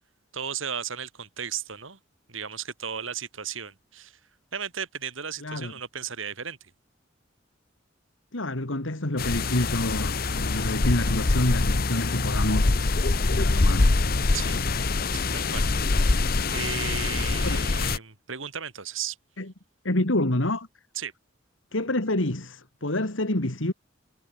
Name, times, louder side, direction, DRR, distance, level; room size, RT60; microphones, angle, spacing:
voice 1, 0.3-2.0 2.3-4.2 4.5-6.7 14.3-14.6 15.1-15.6 15.9-19.2 20.9-21.1, right 7 dB, 85° right, 3.1 m, -35 dB
voice 2, 5.4-5.7 8.3-12.8 13.2-13.9 14.4-14.7 17.4-17.7 19.4-19.5 19.8-20.7 21.7-23.7, left 1 dB, 80° left, 2.6 m, -28 dB
sound 1, 9.2-18.0, left 3 dB, 50° left, 0.9 m, -24 dB
head